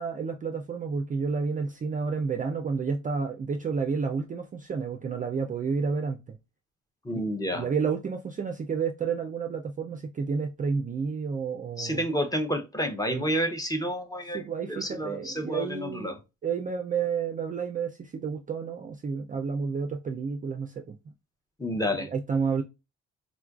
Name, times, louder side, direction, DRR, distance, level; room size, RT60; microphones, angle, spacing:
voice 1, 0.0-6.4 7.1-7.2 7.5-12.0 13.1-13.3 14.3-21.0 21.8-22.6, right 5 dB, 30° right, 0.4 m, -30 dB
voice 2, 7.0-7.6 11.8-16.2 21.6-22.1, equal, 10° left, 0.6 m, -30 dB
3.8 x 2.3 x 2.3 m
cardioid pair, 90°, 30 cm